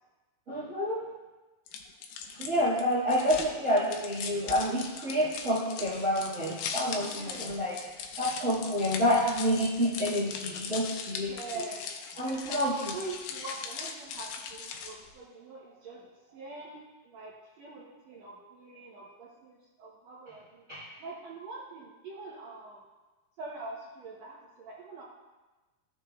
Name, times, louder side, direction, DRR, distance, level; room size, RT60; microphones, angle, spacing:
voice 1, 0.5-1.0 2.4-7.8 8.2-11.3 12.2-12.8 20.7-20.8, equal, 35° right, -9 dB, 1.2 m, -28 dB
sound 1, 1.7-15.1, left 6 dB, 85° left, 2.3 m, -40 dB
voice 2, 6.9-7.6 11.2-12.0 12.2-16.8 17.0-22.8 23.4-25.0, right 3 dB, 70° right, -4 dB, 1.6 m, -44 dB
13.5 x 6.4 x 2.3 m, 1.2 s
omnidirectional pair, 4.0 m